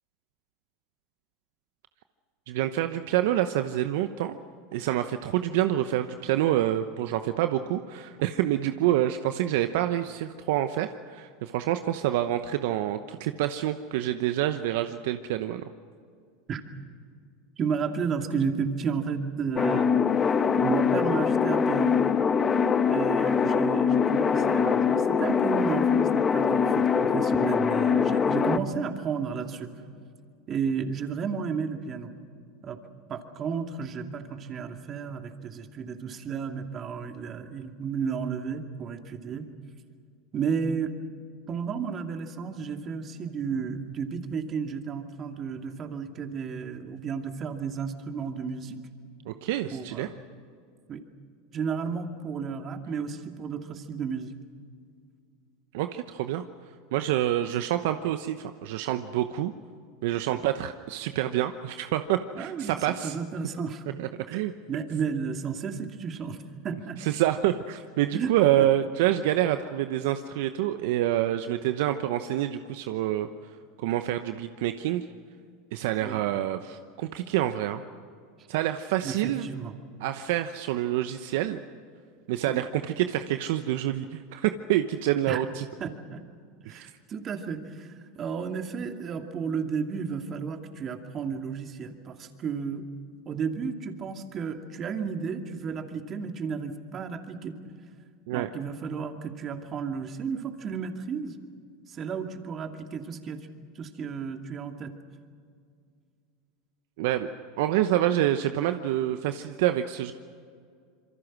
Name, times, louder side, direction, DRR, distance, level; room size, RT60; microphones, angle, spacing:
voice 1, 2.5-4.4 4.7-15.6 49.3-50.1 55.7-56.4 56.9-59.5 60.0-63.1 64.0-64.5 67.0-73.3 73.8-75.1 75.7-77.8 78.5-79.5 80.0-81.6 82.3-85.6 86.6-86.9 98.3-98.5 107.0-107.3 107.6-110.1, right 13 dB, 70° right, 9 dB, 0.9 m, -27 dB
voice 2, 17.6-19.9 20.6-22.0 22.9-29.7 30.5-32.1 32.6-32.8 33.1-39.5 40.3-40.9 41.5-48.8 49.7-50.1 50.9-51.0 51.5-54.4 60.3-60.4 62.3-62.8 63.0-63.8 64.3-64.4 64.7-67.0 68.1-68.3 68.6-68.7 76.0-76.2 79.0-79.8 82.5-82.6 85.3-85.4 85.8-86.2 86.6-92.9 93.3-97.6 98.3-101.4 101.9-103.5 103.7-104.9, right 6 dB, 35° right, 5 dB, 2.5 m, -33 dB
sound 1, 19.6-28.6, left 6 dB, 25° left, 1.2 m, -23 dB
26.5 x 23.5 x 6.2 m, 2.2 s
hypercardioid pair, 100°, 0 cm